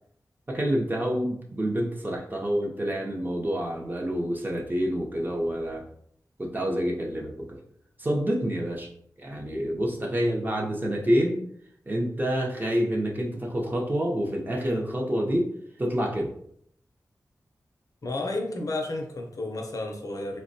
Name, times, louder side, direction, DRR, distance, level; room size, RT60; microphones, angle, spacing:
voice 1, 0.5-5.8 6.4-7.6 8.0-8.9 9.2-11.4 11.9-15.5 15.8-16.3, equal, 25° right, 0 dB, 0.5 m, -27 dB
voice 2, 18.0-20.4, left 2 dB, 55° left, 2 dB, 0.5 m, -32 dB
3.4 x 2.1 x 2.6 m, 0.66 s
wide cardioid pair, 115°, 7 cm